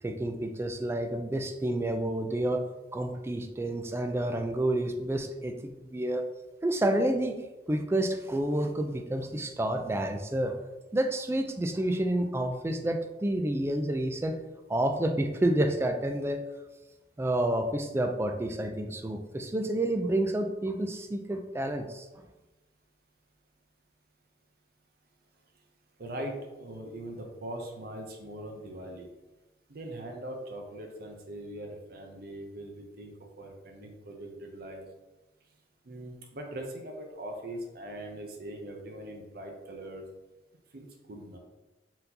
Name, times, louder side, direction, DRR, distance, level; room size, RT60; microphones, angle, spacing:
voice 1, 0.0-2.6 2.9-6.2 6.6-7.4 7.7-10.6 10.9-14.4 14.7-16.4 17.2-22.1, right 1 dB, 15° right, 5 dB, 0.3 m, -29 dB
voice 2, 26.0-29.1 29.7-34.9 35.8-40.0 40.7-41.4, right 1 dB, 55° right, 2 dB, 0.6 m, -41 dB
4.3 x 3.9 x 2.7 m, 1.1 s
head